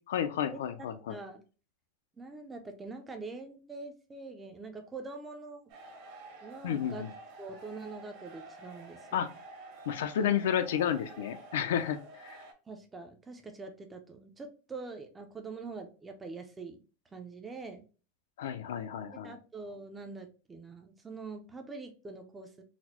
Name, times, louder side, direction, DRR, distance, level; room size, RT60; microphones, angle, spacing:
voice 1, 0.1-1.1 6.6-7.1 9.1-9.3 9.9-12.4 18.4-19.3, left 9 dB, 80° left, 10 dB, 0.5 m, -31 dB
voice 2, 1.1-1.4 2.2-5.6 6.4-7.0 7.4-9.3 12.7-16.8 17.1-17.8 19.2-22.6, right 3 dB, 10° right, 5 dB, 0.4 m, -44 dB
sound 1, 5.7-12.5, right 2 dB, 40° right, 0.8 m, -50 dB
4.0 x 2.1 x 2.9 m, 0.35 s
supercardioid pair, 175°, 0 cm